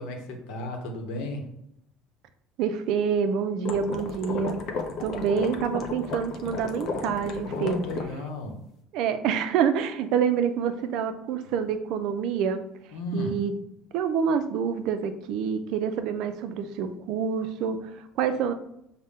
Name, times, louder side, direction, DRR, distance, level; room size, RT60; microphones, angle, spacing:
voice 1, 0.0-1.5 7.4-8.5 12.9-13.4, left 2 dB, 80° left, 3 dB, 0.8 m, -34 dB
voice 2, 2.6-4.6 5.0-7.8 8.9-12.6 13.1-13.6 13.9-18.5, right 7 dB, 60° right, 9 dB, 0.4 m, -27 dB
sound 1, 3.6-8.1, left 4 dB, 45° left, 0.5 m, -33 dB
5.4 x 2.1 x 3.6 m, 0.77 s
cardioid pair, 155°, 0 cm